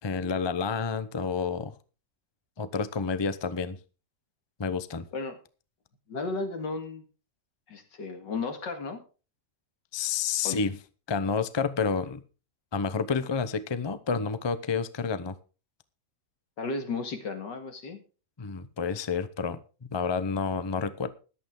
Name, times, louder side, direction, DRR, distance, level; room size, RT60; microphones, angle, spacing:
voice 1, 0.0-1.7 2.6-3.8 4.6-5.0 9.9-10.8 11.1-12.2 12.7-15.4 18.4-21.1, left 5 dB, 35° left, 13 dB, 0.4 m, -29 dB
voice 2, 6.1-7.0 7.7-9.0 10.4-10.6 16.6-18.0, left 3 dB, 90° left, 6 dB, 2.7 m, -34 dB
14.5 x 11.5 x 3.8 m, 0.35 s
omnidirectional pair, 1.9 m